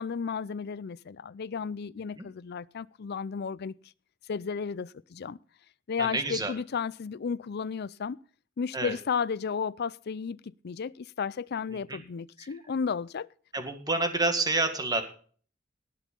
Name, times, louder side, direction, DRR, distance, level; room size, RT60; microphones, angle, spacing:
voice 1, 0.0-3.7 4.3-5.4 5.9-8.2 8.6-13.3, left 6 dB, 55° left, 0.4 m, -33 dB
voice 2, 6.0-6.5 8.7-8.9 11.9-12.0 12.4-12.5 13.5-15.0, right 3 dB, 20° right, 1.9 m, -28 dB
18.5 x 6.4 x 5.3 m
head